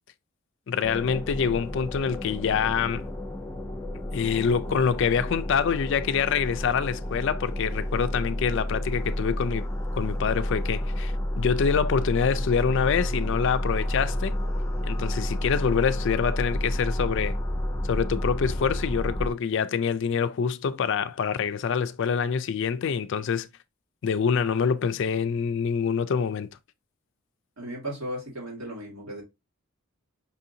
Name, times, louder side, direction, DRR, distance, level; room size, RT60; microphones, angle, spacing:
voice 1, 0.7-3.1 4.1-14.4 14.8-17.4 17.9-23.5 24.0-26.5, left 6 dB, 55° left, 0.3 m, -26 dB
sound 1, 0.8-19.3, left 1 dB, 15° left, 0.7 m, -30 dB
voice 2, 27.6-29.2, right 1 dB, 75° right, 2.2 m, -35 dB
5.4 x 2.6 x 2.7 m
head